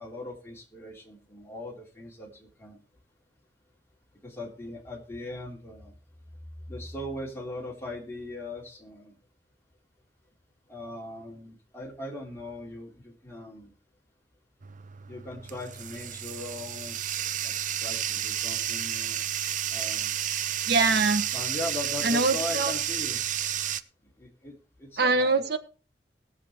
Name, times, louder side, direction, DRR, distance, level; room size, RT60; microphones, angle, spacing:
voice 1, 0.0-2.8 4.2-5.9 6.7-9.1 10.7-13.7 15.1-17.5 17.8-19.2 19.7-20.1 21.3-23.4 24.2-25.5, left 1 dB, 15° left, -2 dB, 3.1 m, -39 dB
Bathtub (filling or washing), 14.6-23.8, right 10 dB, 45° right, 0.5 m, -31 dB
voice 2, 20.7-21.3 22.0-22.7 25.0-25.6, right 3 dB, 60° right, 7 dB, 1.3 m, -23 dB
18.5 x 7.2 x 4.5 m, 0.36 s
head